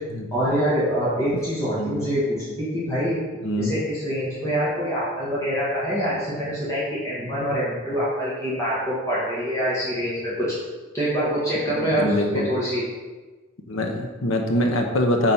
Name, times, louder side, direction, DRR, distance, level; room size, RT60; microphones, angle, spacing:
voice 1, 0.3-3.2 3.6-10.6 10.9-12.8, equal, 15° left, -9 dB, 1.9 m, -25 dB
voice 2, 11.8-12.5 13.7-15.3, left 1 dB, 75° left, 3 dB, 0.9 m, -23 dB
8.8 x 4.1 x 5.7 m, 1.3 s
head